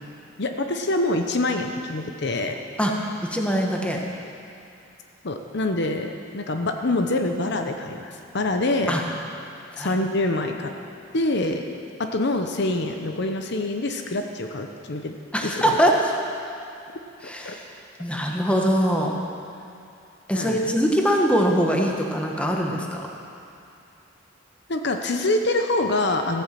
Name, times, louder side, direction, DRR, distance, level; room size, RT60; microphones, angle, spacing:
voice 1, 0.4-2.6 5.2-9.0 9.8-10.7 11.1-11.6 12.0-15.1 15.4-15.8 17.4-17.5 20.3-20.7 24.7-26.4, left 2 dB, 60° left, 5 dB, 0.9 m, -25 dB
voice 2, 3.2-4.0 8.9-9.0 9.7-9.9 15.3-15.9 17.2-17.6 18.0-19.2 20.3-23.1, equal, 5° left, 0 dB, 1.3 m, -22 dB
14.5 x 10.0 x 7.5 m, 2.6 s
head